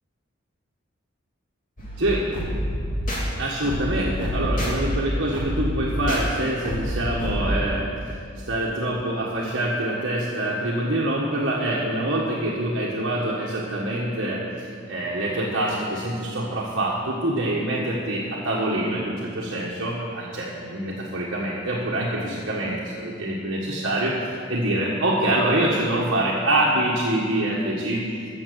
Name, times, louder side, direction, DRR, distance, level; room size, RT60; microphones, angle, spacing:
sound 1, 1.8-7.4, equal, 45° left, 2.7 m, -28 dB
voice 1, 2.0-2.3 3.4-24.1 24.5-28.0, right 1 dB, 65° right, -5 dB, 1.6 m, -25 dB
14.5 x 7.3 x 6.9 m, 2.3 s
head